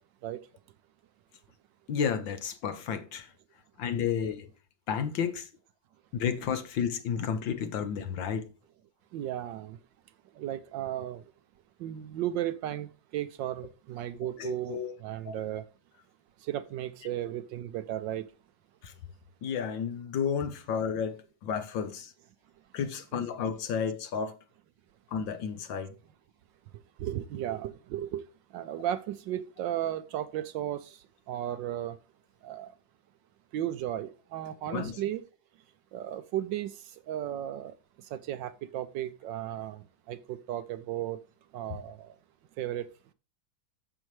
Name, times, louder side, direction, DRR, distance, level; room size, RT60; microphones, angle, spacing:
voice 1, 1.9-3.3 3.8-4.5 4.9-5.5 6.1-8.4 14.4-14.9 15.2-15.4 17.0-17.1 18.8-18.9 19.4-22.1 22.7-24.4 25.1-25.9 34.7-35.0, left 7 dB, 70° left, 1.6 m, -32 dB
voice 2, 9.1-9.8 10.4-11.2 11.8-12.9 13.1-15.6 16.5-18.2 23.1-23.2 27.0-28.2 28.5-30.8 31.3-31.9 32.4-32.7 33.5-35.2 35.9-36.7 37.1-37.7 38.1-39.8 40.1-41.2 41.5-42.1 42.6-42.9, right 12 dB, 75° right, 1.2 m, -34 dB
9.6 x 7.2 x 3.1 m
omnidirectional pair, 2.2 m